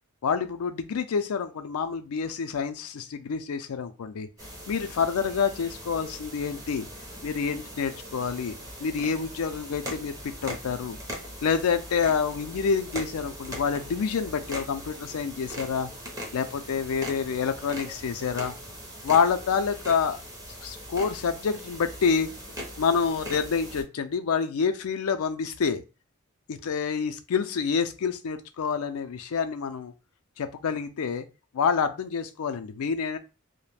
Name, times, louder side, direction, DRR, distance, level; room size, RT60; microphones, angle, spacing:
voice 1, 0.2-4.3 4.7-6.9 7.2-11.0 11.4-15.9 16.3-18.5 19.0-20.2 20.6-22.3 22.8-25.8 26.5-29.9 30.4-31.3 31.5-33.2, left 6 dB, 85° left, 9 dB, 0.4 m, -27 dB
sound 1, 4.4-23.8, equal, 15° right, 0.6 m, -40 dB
2.3 x 2.1 x 3.2 m, 0.29 s
head